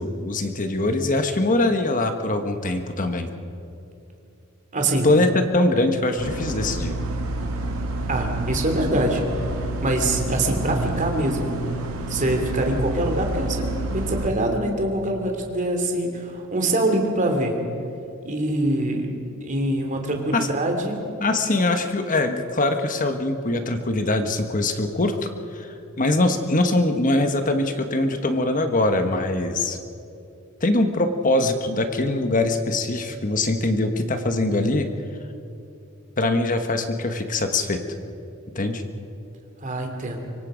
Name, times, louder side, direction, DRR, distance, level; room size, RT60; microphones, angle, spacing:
voice 1, 0.0-3.3 5.0-6.9 20.3-20.5 21.2-29.8 30.6-34.9 36.2-37.8 38.5-38.8, left 2 dB, 40° left, 7 dB, 1.2 m, -22 dB
voice 2, 4.7-5.1 8.1-9.2 9.5-11.7 12.1-17.6 18.2-19.1 19.4-21.0 39.6-40.2, right 1 dB, 35° right, 3 dB, 3.0 m, -24 dB
sound 1, 6.2-14.3, right 2 dB, 80° right, 2.3 m, -29 dB
25.0 x 23.5 x 5.1 m, 2.7 s
head